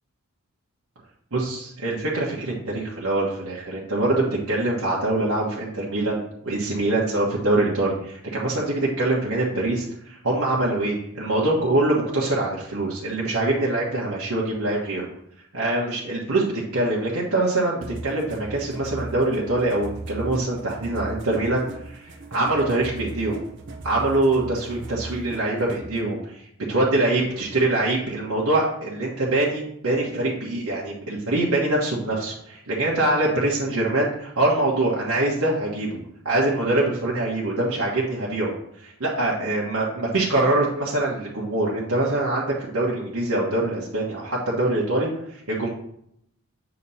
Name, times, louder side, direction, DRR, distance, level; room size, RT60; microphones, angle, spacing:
voice 1, 1.3-15.1 15.5-23.4 23.8-36.0 36.2-45.7, right 2 dB, 85° right, -5 dB, 1.3 m, -24 dB
sound 1, 17.8-26.0, right 2 dB, 55° right, 0.8 m, -38 dB
8.2 x 3.0 x 5.5 m, 0.74 s
head